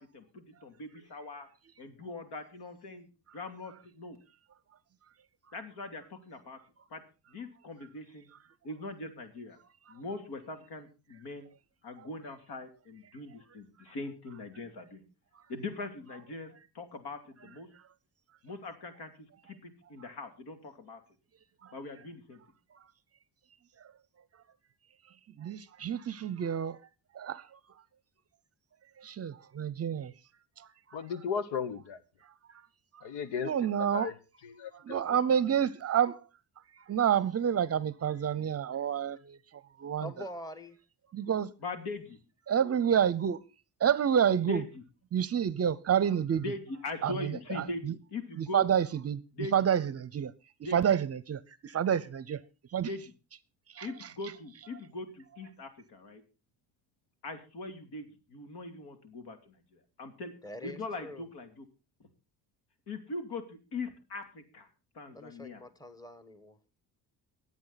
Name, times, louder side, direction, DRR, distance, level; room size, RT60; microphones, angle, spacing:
voice 1, 0.0-1.5 1.8-3.1 3.3-4.2 5.5-6.6 6.9-7.0 7.3-8.3 8.6-9.6 9.9-11.5 11.8-15.0 15.5-16.5 16.7-17.7 18.4-21.0 21.7-22.4 41.6-42.2 44.4-44.8 46.4-48.6 49.3-49.6 50.6-50.8 52.8-53.0 53.8-56.2 57.2-60.3 60.6-61.6 62.9-64.7 64.9-65.6, left 2 dB, 70° left, 2.9 m, -41 dB
voice 2, 25.4-26.8 27.1-27.5 29.0-30.1 30.6-30.7 33.4-34.1 34.8-36.2 36.9-39.4 39.8-40.1 41.1-41.5 42.5-43.4 43.8-44.6 45.1-46.4 47.0-48.0 48.4-49.2 49.5-50.3 50.7-52.4 52.7-52.9 53.7-53.9, right 8 dB, 35° right, 0.7 m, -28 dB
voice 3, 30.9-32.0 33.0-33.5 33.8-34.1 34.4-35.0, left 6 dB, 85° left, 1.3 m, -35 dB
voice 4, 40.0-40.8 60.4-61.2 65.1-66.6, left 1 dB, 10° left, 1.4 m, -44 dB
23.0 x 8.5 x 4.0 m
cardioid pair, 130°, 41 cm